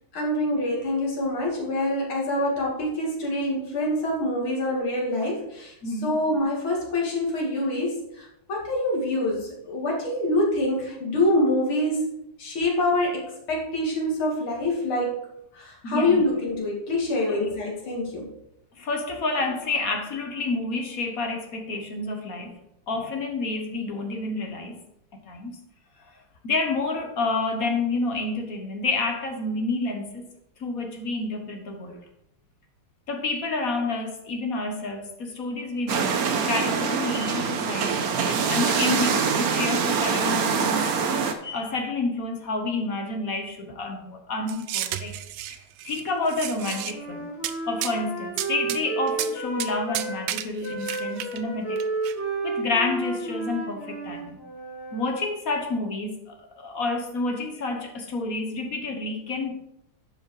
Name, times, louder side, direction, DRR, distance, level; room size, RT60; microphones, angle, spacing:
voice 1, 0.1-5.7 6.0-15.1 15.5-18.3, left 1 dB, 80° left, -2 dB, 3.1 m, -25 dB
voice 2, 5.8-6.2 15.8-16.3 17.3-17.4 18.7-22.6 22.9-24.8 25.2-25.6 26.1-30.3 30.6-32.0 33.1-40.9 41.4-45.2 45.5-45.6 45.8-47.3 47.7-51.8 52.4-54.4 54.9-59.5, left 3 dB, 50° left, 4 dB, 1.4 m, -29 dB
sound 1, 35.9-41.3, right 5 dB, 55° right, 1.1 m, -24 dB
sound 2, 44.5-46.0 46.3-46.9 47.4-47.5 47.8-48.0 48.4-48.8 49.1-49.3 49.6-49.7 49.9-51.4 51.8-52.1, right 12 dB, 75° right, 1.1 m, -32 dB
Wind instrument woodwind instrument, 46.5-50.3 50.6-55.1, right 2 dB, 25° left, 2.9 m, -32 dB
11.0 x 5.1 x 4.8 m, 0.81 s
omnidirectional pair, 2.3 m